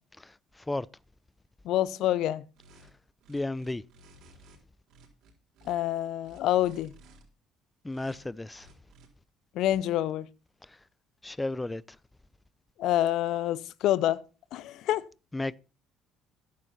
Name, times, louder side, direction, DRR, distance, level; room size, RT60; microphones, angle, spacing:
voice 1, 1.6-2.4 5.7-6.9 9.5-10.3 12.8-14.2 14.5-15.0, left 13 dB, 70° left, 0.6 m, -27 dB
sound 1, 2.6-2.9 3.2-4.6 4.9-5.7 6.2-7.2 7.9-8.2 8.5-9.1, right 2 dB, 70° right, 3.9 m, -56 dB
voice 2, 3.3-3.8 7.8-8.7 11.2-11.8 15.3-15.6, left 2 dB, 15° left, 0.6 m, -32 dB
13.5 x 10.5 x 4.2 m
hypercardioid pair, 60°, 0 cm